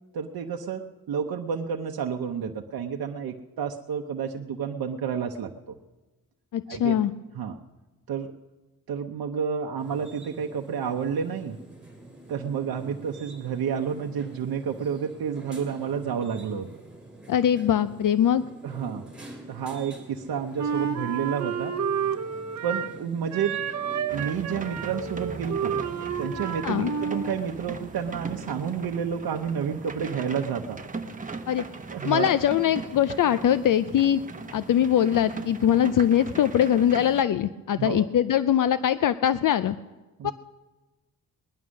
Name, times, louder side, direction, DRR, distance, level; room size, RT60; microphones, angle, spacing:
voice 1, 0.1-5.8 6.7-7.0 7.3-7.6 8.1-8.3 8.9-11.6 12.3-16.7 18.6-19.1 19.5-21.8 22.6-23.7 24.1-25.8 26.2-30.8 31.9-32.3 37.8-38.0 40.2-40.3, right 7 dB, 85° right, 3 dB, 0.8 m, -30 dB
voice 2, 6.5-7.1 17.3-18.4 26.6-26.9 31.5-31.6 32.0-34.2 34.5-39.8 40.2-40.3, left 10 dB, 65° left, 14 dB, 0.5 m, -22 dB
sound 1, 9.8-28.8, right 2 dB, 5° right, 2.8 m, -47 dB
Wind instrument woodwind instrument, 20.6-23.0 23.3-27.4, right 7 dB, 50° right, 0.8 m, -30 dB
sound 2, 24.1-37.2, right 3 dB, 20° right, 0.8 m, -39 dB
19.5 x 11.0 x 6.3 m, 1.2 s
wide cardioid pair, 160°, 35 cm